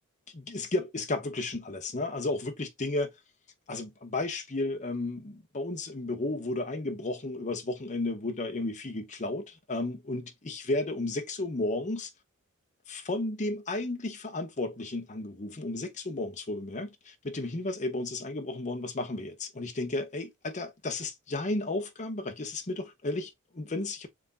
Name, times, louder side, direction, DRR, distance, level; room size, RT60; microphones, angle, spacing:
voice 1, 0.3-3.1 3.7-12.1 12.9-24.1, left 2 dB, 35° left, 0.9 m, -33 dB
3.6 x 3.2 x 3.9 m
head